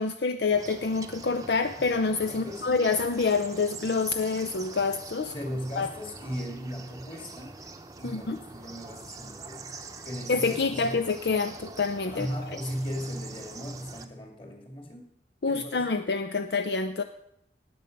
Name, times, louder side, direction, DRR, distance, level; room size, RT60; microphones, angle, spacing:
voice 1, 0.0-5.3 5.8-5.9 8.0-8.4 10.3-12.3 15.4-17.0, left 4 dB, 65° left, 9 dB, 0.6 m, -27 dB
sound 1, 0.5-14.1, right 3 dB, 20° right, 0.8 m, -44 dB
voice 2, 2.3-2.9 5.2-7.6 8.0-9.8 10.0-11.0 12.1-15.1 15.5-15.9, equal, 30° left, 2 dB, 2.4 m, -37 dB
19.0 x 7.7 x 5.3 m, 0.75 s
head